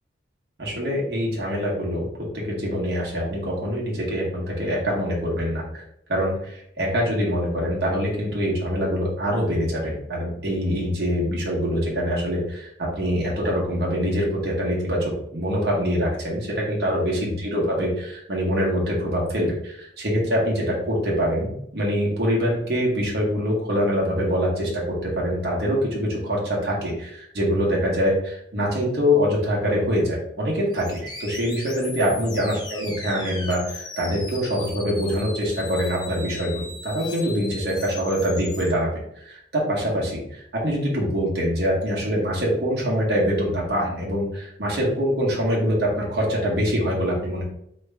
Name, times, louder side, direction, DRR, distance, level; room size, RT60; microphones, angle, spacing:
voice 1, 0.6-2.1 2.3-5.8 6.1-38.9 39.1-47.4, equal, 55° right, -4 dB, 1.3 m, -24 dB
sound 1, 30.7-38.7, left 3 dB, 20° left, 0.6 m, -38 dB
4.2 x 3.1 x 3.4 m, 0.74 s
head